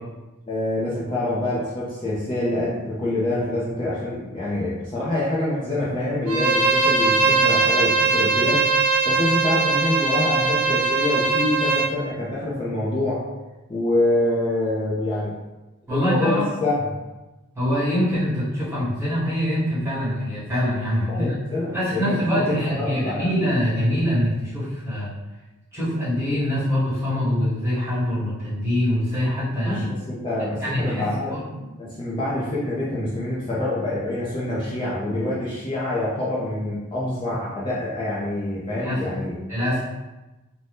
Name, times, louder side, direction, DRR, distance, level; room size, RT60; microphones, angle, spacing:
voice 1, 0.5-8.7 9.0-13.2 13.7-15.3 15.9-16.8 21.1-23.3 29.6-39.4, left 1 dB, 20° left, -9 dB, 0.6 m, -26 dB
Bowed string instrument, 6.3-11.9, right 3 dB, 85° right, 0.4 m, -20 dB
voice 2, 15.9-16.5 17.5-21.3 21.7-25.1 25.7-29.8 30.6-31.4 38.8-39.0 39.5-39.9, equal, 10° right, -10 dB, 1.2 m, -24 dB
2.6 x 2.2 x 3.4 m, 1.1 s
head